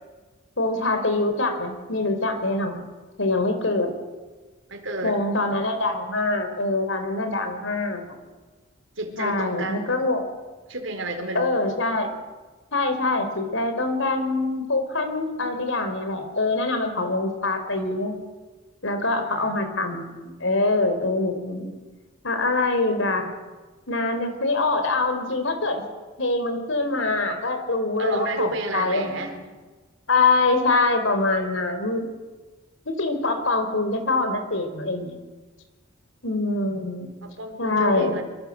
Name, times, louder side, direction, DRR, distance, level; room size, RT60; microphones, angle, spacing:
voice 1, 0.6-2.9 3.2-3.9 5.0-8.0 9.2-10.2 11.3-12.1 12.7-18.2 18.8-21.7 22.2-23.3 23.9-25.8 26.2-29.4 30.1-32.1 32.9-35.2 36.2-37.1 37.6-38.1, left 2 dB, 75° left, 7 dB, 4.4 m, -24 dB
voice 2, 4.7-5.2 9.0-10.0 10.7-11.5 19.0-19.8 28.0-29.4 37.2-38.2, right 2 dB, 70° right, 5 dB, 4.2 m, -31 dB
24.5 x 24.5 x 7.8 m, 1.3 s
head